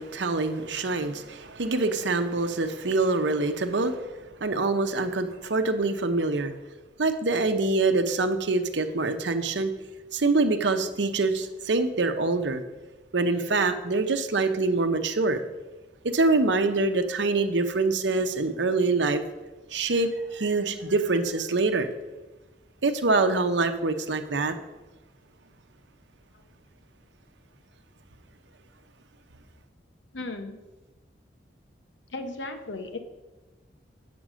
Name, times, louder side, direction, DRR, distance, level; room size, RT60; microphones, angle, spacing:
voice 1, 0.0-4.1 4.4-6.5 7.0-9.7 10.1-12.6 13.1-15.4 16.0-19.2 19.7-21.9 22.8-24.5, right 3 dB, 85° right, 8 dB, 0.8 m, -25 dB
voice 2, 30.1-30.6 32.1-33.0, left 2 dB, 90° left, 6 dB, 1.0 m, -35 dB
8.9 x 6.0 x 6.2 m, 1.2 s
head